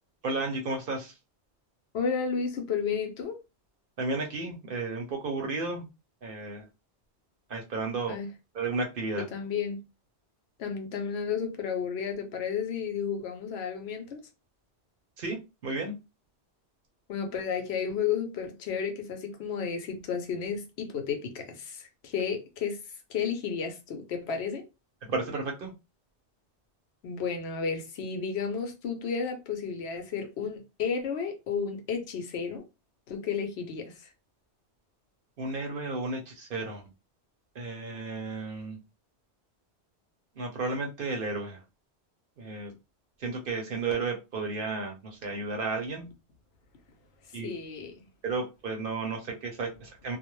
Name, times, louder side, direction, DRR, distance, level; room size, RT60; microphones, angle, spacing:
voice 1, 0.2-1.1 4.0-5.9 6.2-6.7 7.5-8.2 8.5-9.2 15.2-15.4 15.6-16.0 25.1-25.7 35.4-36.9 37.5-38.8 40.4-41.6 42.4-42.7 43.2-46.1 47.3-47.5 48.2-50.2, right 3 dB, 55° right, 0.8 m, -33 dB
voice 2, 1.9-3.4 8.1-8.3 9.1-9.8 10.6-14.3 17.1-24.7 27.0-32.7 33.1-34.1 47.2-48.1, left 6 dB, 70° left, 0.9 m, -32 dB
2.4 x 2.1 x 3.0 m
omnidirectional pair, 1.1 m